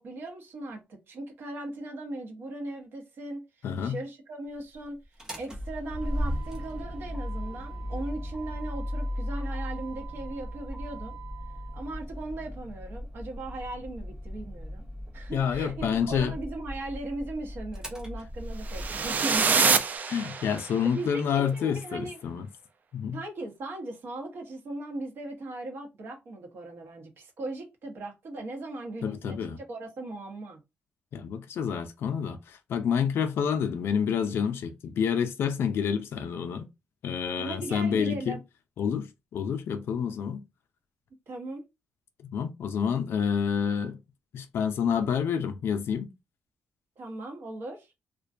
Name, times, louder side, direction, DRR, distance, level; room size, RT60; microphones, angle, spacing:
voice 1, 0.0-3.4 3.8-5.0 5.4-11.2 11.7-14.9 15.1-19.7 20.9-22.2 23.1-30.6 37.4-38.4 41.3-41.6 47.0-47.9, right 2 dB, 60° right, 0.8 m, -38 dB
voice 2, 3.6-4.0 15.3-16.3 20.1-22.5 22.9-23.2 29.0-29.6 31.1-36.7 37.0-38.3 38.8-39.1 39.3-40.4 42.3-44.0 44.3-46.1, left 7 dB, 70° left, 0.4 m, -28 dB
Motor vehicle (road), 5.0-19.7, equal, 15° right, 0.7 m, -37 dB
sound 1, 18.7-20.8, right 5 dB, 40° right, 0.3 m, -25 dB
2.4 x 2.2 x 2.5 m
cardioid pair, 125°, 4 cm